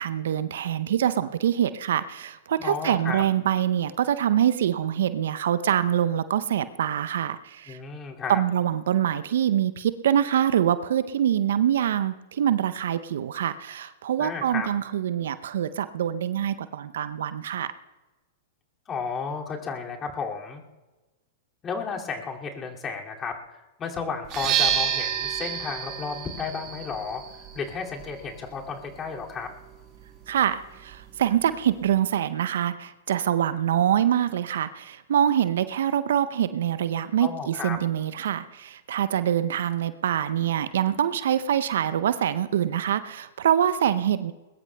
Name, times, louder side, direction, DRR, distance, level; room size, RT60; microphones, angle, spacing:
voice 1, 0.0-7.8 8.3-17.7 30.3-44.3, right 10 dB, 65° right, 13 dB, 0.6 m, -25 dB
voice 2, 2.6-3.2 7.7-8.4 14.2-14.7 18.9-20.6 21.6-27.2 27.5-29.5 37.2-37.8, left 5 dB, 25° left, -1 dB, 2.4 m, -33 dB
sound 1, 24.2-32.0, right 9 dB, 40° right, 1.5 m, -32 dB
21.5 x 21.0 x 2.3 m, 1.1 s
hypercardioid pair, 105°, 0 cm